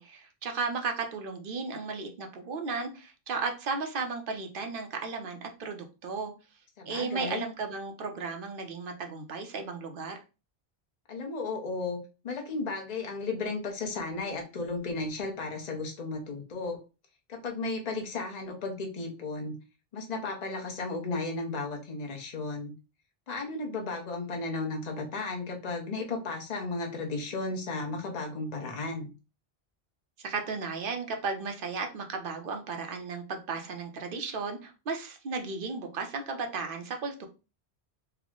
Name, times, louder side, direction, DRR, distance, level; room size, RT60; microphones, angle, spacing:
voice 1, 0.0-6.3 6.9-10.2 30.2-37.3, right 4 dB, 60° right, 4 dB, 0.8 m, -35 dB
voice 2, 6.8-7.4 11.1-12.0 12.2-16.8 17.3-19.5 19.9-22.7 23.3-29.1, left 3 dB, 45° left, 2 dB, 0.9 m, -34 dB
3.4 x 2.1 x 3.6 m, 0.30 s
omnidirectional pair, 1.1 m